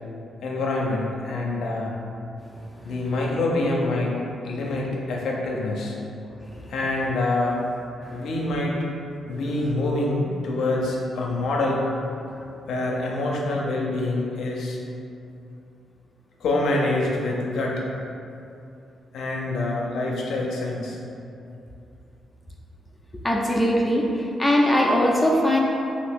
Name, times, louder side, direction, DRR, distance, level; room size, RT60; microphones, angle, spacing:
voice 1, 0.4-1.9 2.8-4.2 4.4-6.0 6.7-7.6 8.1-8.7 9.3-11.8 12.7-14.8 16.4-17.8 19.1-21.0, left 2 dB, 80° left, -2 dB, 0.5 m, -26 dB
voice 2, 23.2-24.1 24.4-25.6, left 1 dB, 10° left, -2 dB, 0.4 m, -20 dB
2.8 x 2.5 x 3.5 m, 2.7 s
cardioid pair, 75°, 0 cm